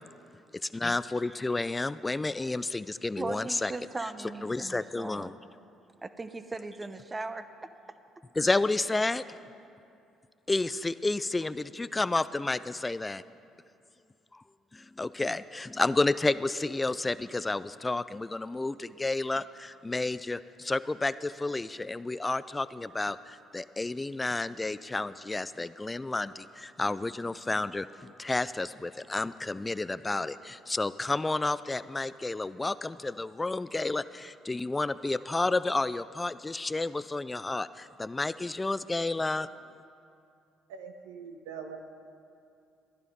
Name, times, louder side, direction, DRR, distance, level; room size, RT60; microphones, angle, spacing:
voice 1, 0.7-3.7 4.4-5.3 8.4-9.2 10.5-13.2 14.3-14.4 14.7-39.5, left 2 dB, 20° left, 15 dB, 0.4 m, -31 dB
voice 2, 3.2-5.3 6.0-7.7, right 3 dB, 25° right, 11 dB, 0.8 m, -38 dB
voice 3, 40.7-41.8, right 6 dB, 90° right, 5 dB, 1.0 m, -42 dB
14.5 x 11.0 x 5.4 m, 2.6 s
hypercardioid pair, 60°, 0 cm